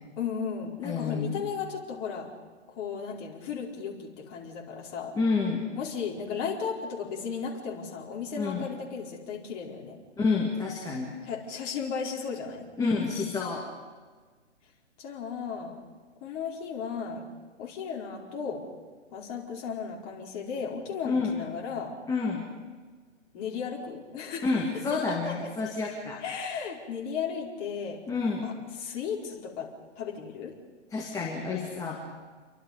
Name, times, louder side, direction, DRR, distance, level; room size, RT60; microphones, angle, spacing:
voice 1, 0.2-2.3 2.7-5.2 5.7-10.0 11.2-12.7 15.0-15.8 16.2-17.3 17.6-18.6 19.1-22.0 23.3-24.5 24.9-25.4 26.2-28.0 28.4-28.5 28.8-30.6, left 6 dB, 30° left, -2 dB, 4.4 m, -35 dB
voice 2, 0.8-1.3 5.1-5.6 8.4-8.7 10.2-11.2 12.8-13.6 21.0-21.3 22.1-22.4 24.4-26.2 28.1-28.5 30.9-32.0, left 4 dB, 10° left, -2 dB, 2.3 m, -29 dB
28.5 x 23.5 x 5.2 m, 1.4 s
hypercardioid pair, 140°, 37 cm